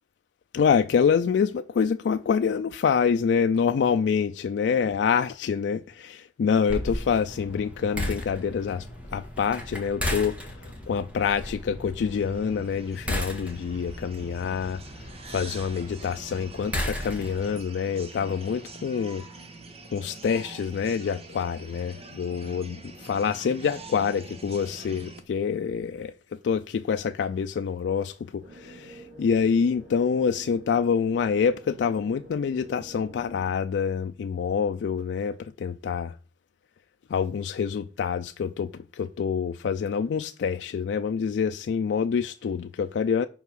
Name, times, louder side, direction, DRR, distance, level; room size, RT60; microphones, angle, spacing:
voice 1, 0.5-8.9 9.1-14.8 15.3-19.2 19.9-22.8 23.1-26.1 26.4-36.1 37.1-43.3, left 6 dB, 80° left, 0.3 m, -26 dB
sound 1, 6.7-17.6, left 1 dB, 10° right, 1.8 m, -35 dB
sound 2, 12.1-25.2, right 3 dB, 35° right, 1.1 m, -45 dB
sound 3, 28.4-33.5, right 1 dB, 80° right, 3.6 m, -48 dB
5.7 x 4.8 x 6.2 m
head